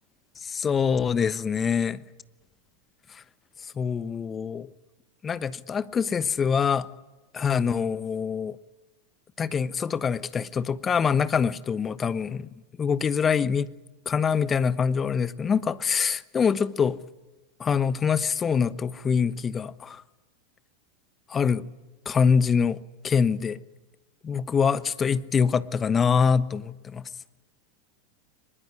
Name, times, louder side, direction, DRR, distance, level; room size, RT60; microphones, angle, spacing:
voice 1, 0.4-2.0 3.8-4.7 5.2-6.9 7.3-8.6 9.4-12.5 12.8-13.7 14.1-17.0 17.6-20.0 21.3-21.6 22.1-22.8 23.0-23.6 24.2-27.0, left 6 dB, 25° left, 1.1 m, -24 dB
24.0 x 21.5 x 9.9 m
hypercardioid pair, 90°, 0 cm